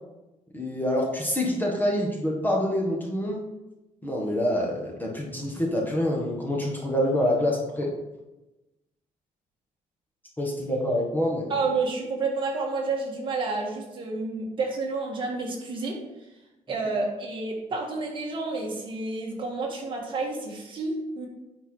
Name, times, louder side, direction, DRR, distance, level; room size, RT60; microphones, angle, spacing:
voice 1, 0.5-3.4 4.0-7.9 10.4-11.5, left 1 dB, 15° left, -2 dB, 1.5 m, -26 dB
voice 2, 11.5-16.0 16.7-21.3, right 3 dB, 35° right, -1 dB, 1.8 m, -30 dB
10.0 x 4.7 x 4.6 m, 1.0 s
cardioid pair, 165°, 14 cm